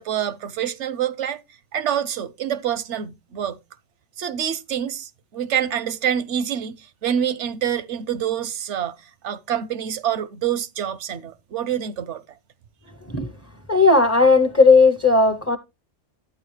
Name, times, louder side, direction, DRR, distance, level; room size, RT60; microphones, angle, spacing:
voice 1, 0.0-1.4 1.7-3.6 4.2-9.0 9.2-12.2, right 9 dB, 85° right, 1.0 m, -26 dB
voice 2, 13.7-15.6, left 3 dB, 20° left, 0.5 m, -15 dB
12.0 x 8.9 x 3.2 m
omnidirectional pair, 1.2 m